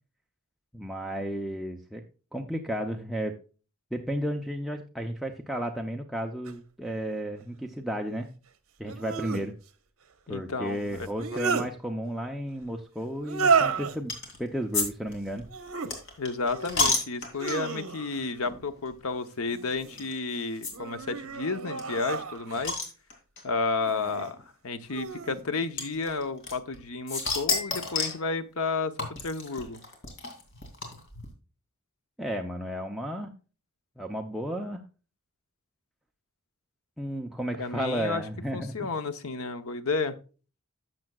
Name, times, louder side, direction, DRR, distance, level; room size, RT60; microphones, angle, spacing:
voice 1, 0.7-2.0 2.3-3.4 3.9-8.3 8.8-9.5 10.3-14.1 14.4-15.5 32.2-33.3 34.0-34.8 37.0-38.9, equal, ahead, 1 dB, 0.6 m, -33 dB
sound 1, 6.5-6.6 8.8-9.5 11.0-11.7 13.2-14.0 15.4-15.9 16.4-16.9 17.3-18.2 19.5-20.1 20.7-22.7 23.8-24.3 24.9-25.4, right 5 dB, 70° right, 1.0 m, -31 dB
voice 2, 10.3-11.4 16.2-22.7 23.4-29.8 37.6-38.2 38.5-40.2, left 4 dB, 70° left, 10 dB, 0.9 m, -32 dB
sound 2, 14.1-14.4 14.7-14.9 15.1-17.8 18.4-18.6 18.9-19.0 20.0-20.1 20.6-20.7 21.0-21.1 21.3-21.4 21.8-23.4 24.3-24.4 25.8-26.8 27.1-28.2 29.0-31.3, left 3 dB, 55° left, 2.6 m, -30 dB
12.0 x 7.5 x 2.3 m, 0.35 s
head